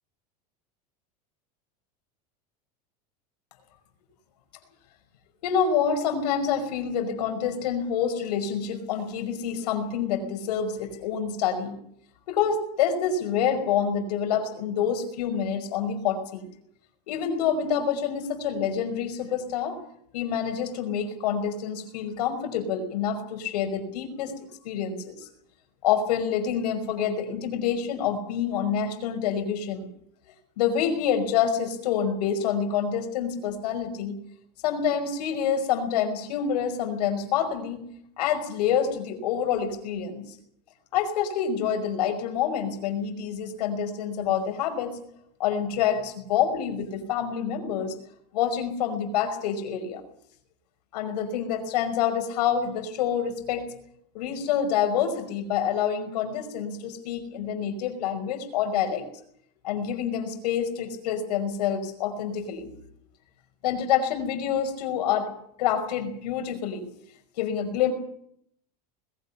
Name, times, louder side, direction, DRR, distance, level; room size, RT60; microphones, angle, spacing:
voice 1, 5.4-11.8 12.3-16.4 17.1-19.8 20.1-24.3 24.6-25.3 25.8-29.9 30.6-34.2 34.6-37.8 38.2-40.4 40.9-45.0 45.4-48.0 48.3-50.0 50.9-53.7 54.1-59.0 59.6-62.7 63.6-65.3 65.6-66.9 67.4-67.9, left 8 dB, 80° left, 7 dB, 5.5 m, -27 dB
21.0 x 16.0 x 9.7 m, 0.69 s
supercardioid pair, 150°, 20 cm